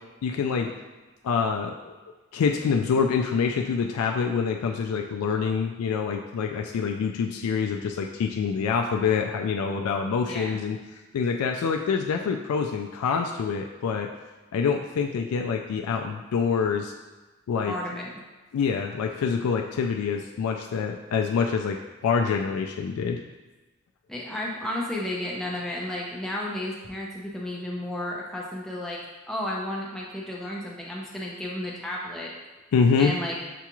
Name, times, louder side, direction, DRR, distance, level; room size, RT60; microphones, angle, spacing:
voice 1, 0.2-0.7 1.2-1.9 2.3-14.1 14.5-16.9 17.5-17.7 18.5-23.2 32.7-33.1, left 6 dB, 85° left, 3 dB, 0.3 m, -26 dB
voice 2, 10.2-10.6 17.7-18.1 24.1-29.0 29.3-32.3 33.0-33.4, left 1 dB, ahead, -4 dB, 0.5 m, -32 dB
6.7 x 2.3 x 2.9 m, 1.2 s
head